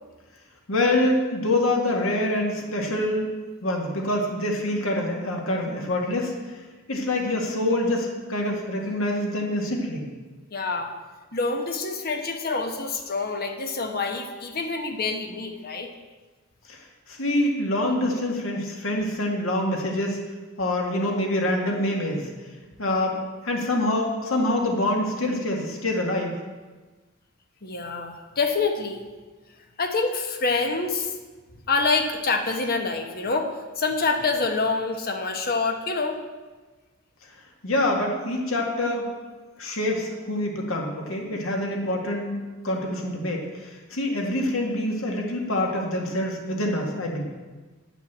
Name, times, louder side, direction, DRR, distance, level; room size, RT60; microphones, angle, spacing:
voice 1, 0.7-3.3 3.6-6.6 6.9-10.1 16.7-16.8 17.1-20.2 20.6-22.3 22.8-23.2 23.4-26.3 37.6-39.1 39.6-42.4 42.6-47.2, left 1 dB, 75° left, 0 dB, 1.9 m, -25 dB
voice 2, 10.5-10.9 11.3-15.9 27.6-29.0 29.8-31.1 31.7-33.5 33.8-36.2, left 4 dB, 50° left, 5 dB, 1.2 m, -26 dB
9.3 x 6.2 x 7.3 m, 1.3 s
head